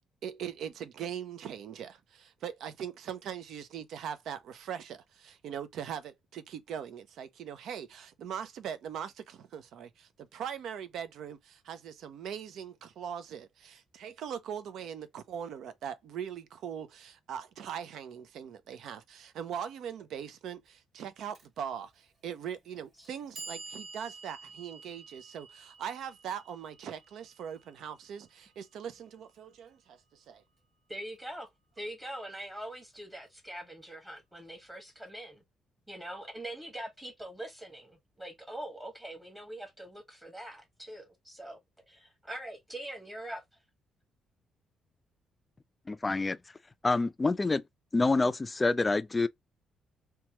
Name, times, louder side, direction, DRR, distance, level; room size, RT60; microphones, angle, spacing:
voice 1, 0.2-30.4, right 8 dB, 75° right, 0.5 m, -41 dB
Clock, 21.3-21.5 22.4-22.5 23.0-29.1, right 4 dB, 60° right, 1.7 m, -49 dB
voice 2, 30.9-31.5 31.8-35.4 35.9-41.6 41.9-43.4, right 1 dB, 15° right, 1.3 m, -43 dB
voice 3, 45.9-46.4 46.8-47.6 47.9-49.3, left 3 dB, 25° left, 0.3 m, -27 dB
2.9 x 2.3 x 2.9 m
cardioid pair, 90°, 0 cm